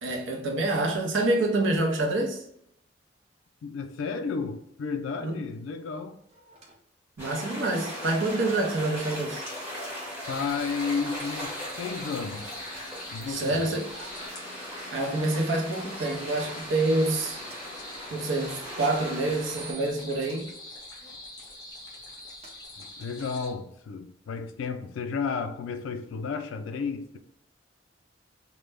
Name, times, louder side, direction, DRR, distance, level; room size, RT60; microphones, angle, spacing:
voice 1, 0.0-2.4 5.2-5.4 7.2-9.4 13.2-14.1 14.9-17.4 18.1-20.5, right 2 dB, 75° right, 0.6 m, -27 dB
voice 2, 3.6-6.2 10.3-12.5 13.1-13.7 22.8-27.2, left 5 dB, 85° left, 0.3 m, -32 dB
sound 1, 5.5-5.6 6.3-6.7 7.3-7.4 7.7-8.0 9.3-9.4 10.3-10.7 11.5-11.6 12.1-12.8 13.7-14.4 14.8-14.9 15.2-15.5 15.8-16.2 16.8-17.0 17.4-17.6 18.6-20.4 21.0-21.2 22.0-22.1 22.4-22.5 23.2-23.3, right 4 dB, 30° right, 0.4 m, -48 dB
sound 2, 7.2-19.7, equal, 10° right, 0.9 m, -39 dB
sound 3, 10.2-23.5, left 2 dB, 20° left, 0.5 m, -45 dB
2.1 x 2.0 x 3.2 m
head